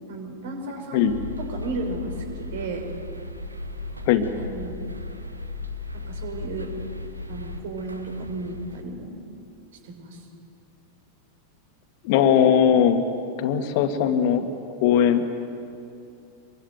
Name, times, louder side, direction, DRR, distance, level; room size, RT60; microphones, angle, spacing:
voice 1, 0.1-1.1 1.5-2.8 4.4-4.8 5.9-6.7 7.3-9.1 9.9-10.2, right 2 dB, 55° right, 4 dB, 6.0 m, -34 dB
sound 1, 1.0-8.8, left 2 dB, 80° right, 2.0 m, -36 dB
voice 2, 12.0-13.0 13.4-14.5 14.8-15.2, left 9 dB, 50° left, 7 dB, 2.1 m, -19 dB
25.5 x 23.0 x 9.5 m, 2.6 s
figure-of-eight pair, 90°, 0 cm